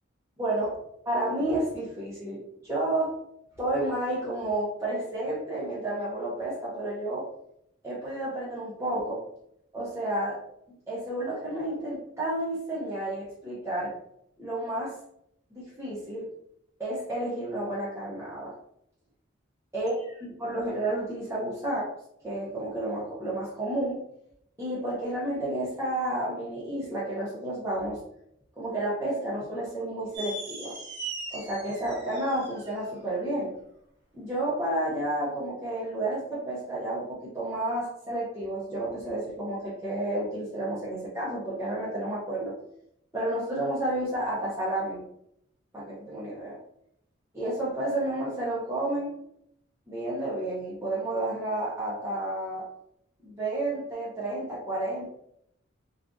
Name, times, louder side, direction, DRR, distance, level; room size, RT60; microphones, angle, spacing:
voice 1, 0.4-0.7 1.1-3.1 3.6-7.2 7.8-9.2 9.7-10.4 10.9-13.9 14.4-14.9 15.5-16.3 16.8-18.5 19.7-20.1 20.4-21.8 22.2-24.0 24.6-28.0 28.6-30.8 31.3-33.5 34.1-42.5 43.1-45.0 45.7-46.6 47.3-49.1 49.9-52.6 53.2-55.1, right 1 dB, 15° right, -8 dB, 0.6 m, -31 dB
sound 1, 30.1-32.8, right 3 dB, 55° right, 1.1 m, -39 dB
3.4 x 2.4 x 2.5 m, 0.74 s
head